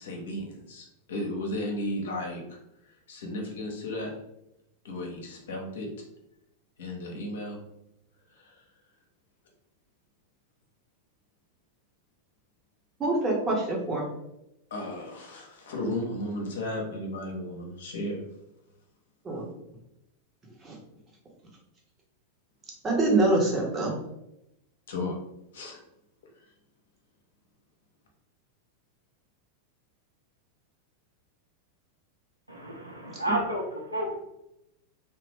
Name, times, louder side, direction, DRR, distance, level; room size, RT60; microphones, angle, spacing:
voice 1, 0.0-2.6 3.1-4.1 4.8-5.9 6.8-7.6 8.3-8.6 14.7-18.2 24.9-25.2 25.5-25.8, left 1 dB, 60° left, 1 dB, 0.7 m, -34 dB
voice 2, 13.0-14.0 19.2-19.5 20.6-20.8 22.8-24.0, right 2 dB, 20° right, -2 dB, 0.9 m, -25 dB
voice 3, 32.5-34.1, right 1 dB, 85° right, -1 dB, 0.6 m, -31 dB
2.8 x 2.1 x 3.1 m, 0.85 s
figure-of-eight pair, 90°, 0 cm